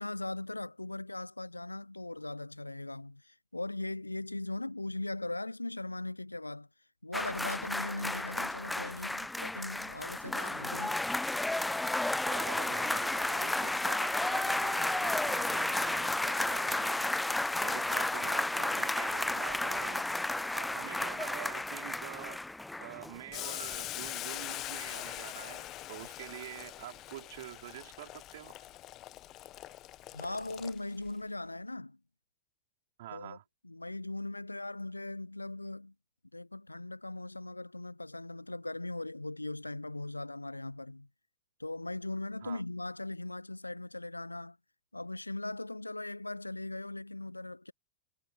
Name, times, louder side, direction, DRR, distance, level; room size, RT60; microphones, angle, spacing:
voice 1, 0.0-6.7 7.0-11.1 30.1-32.0 33.1-33.4 33.6-35.9 36.3-41.1 41.6-44.6 44.9-47.7, left 2 dB, 85° left, 0.9 m, -39 dB
sound 1, 7.1-23.4 23.7-23.9, left 2 dB, 5° left, 0.4 m, -32 dB
voice 2, 12.2-17.1 17.6-20.1 20.5-22.5 22.8-28.5 33.0-33.4 42.4-42.6, right 15 dB, 55° right, 4.9 m, -46 dB
Boiling, 23.3-31.1, left 15 dB, 35° left, 1.3 m, -43 dB
figure-of-eight pair, 90°, 0 cm